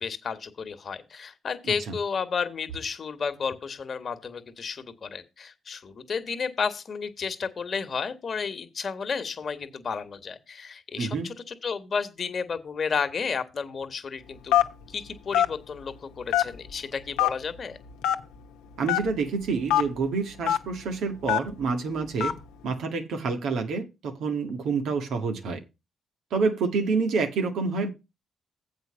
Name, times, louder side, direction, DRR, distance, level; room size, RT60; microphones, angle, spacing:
voice 1, 0.0-14.6 14.9-17.8, left 5 dB, 50° left, 1.5 m, -32 dB
voice 2, 11.0-11.3 18.8-22.3 22.6-25.6 26.3-27.9, right 4 dB, 70° right, 1.7 m, -28 dB
Telephone, 14.5-14.8 15.3-15.5 16.3-16.7 17.2-17.3 18.0-18.2 18.9-19.0 19.7-19.8 20.5-20.6 21.3-21.5 22.2-22.4, left 12 dB, 80° left, 0.9 m, -21 dB
7.9 x 5.3 x 6.9 m
hypercardioid pair, 50°, 0 cm